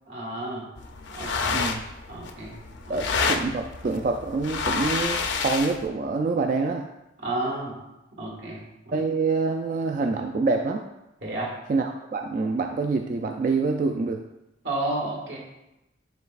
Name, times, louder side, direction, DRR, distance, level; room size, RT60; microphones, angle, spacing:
voice 1, 0.1-0.7 1.1-1.6 2.1-2.6 2.9-3.0 7.2-7.7 8.2-9.0 11.2-11.5 14.6-15.4, right 2 dB, 70° right, -3 dB, 1.6 m, -31 dB
sound 1, 0.8-5.9, left 4 dB, 70° left, 0.6 m, -29 dB
voice 2, 2.9-6.9 8.9-10.8 11.7-14.2, right 3 dB, 45° right, 4 dB, 0.3 m, -26 dB
9.7 x 4.0 x 2.4 m, 0.93 s
head